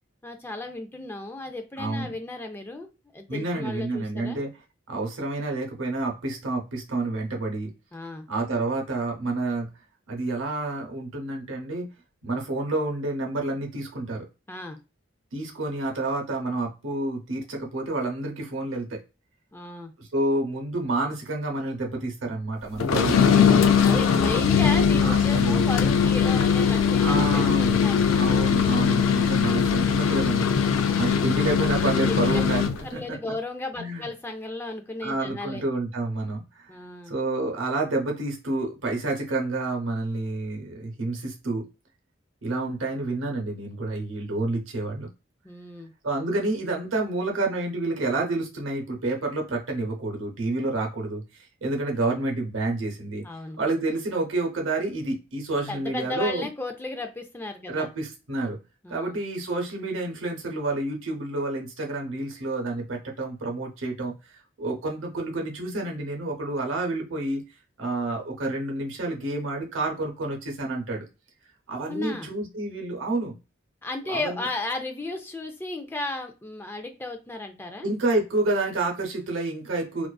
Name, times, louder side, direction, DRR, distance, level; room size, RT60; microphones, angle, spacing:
voice 1, 0.2-4.4 7.9-8.3 14.5-14.8 19.5-19.9 23.8-28.4 30.8-31.2 32.1-32.4 32.8-35.6 36.7-37.1 45.4-45.9 53.2-53.6 55.7-57.9 58.8-59.2 71.9-72.3 73.8-77.9, left 2 dB, 10° left, 5 dB, 0.3 m, -34 dB
voice 2, 1.8-2.1 3.3-4.5 4.9-7.7 8.3-9.7 10.1-11.9 12.2-14.2 15.3-19.0 20.0-23.8 25.0-25.7 27.0-27.8 28.1-30.5 31.0-33.2 33.8-34.1 35.0-36.7 37.1-41.7 42.4-45.1 46.0-53.2 53.6-56.5 57.7-58.6 58.9-64.1 64.6-67.4 67.8-71.0 71.7-73.4 74.1-74.5 77.8-80.1, right 2 dB, 85° right, 1 dB, 0.8 m, -29 dB
sound 1, 22.8-32.8, left 7 dB, 90° left, 0.3 m, -21 dB
2.4 x 2.4 x 2.2 m, 0.28 s
head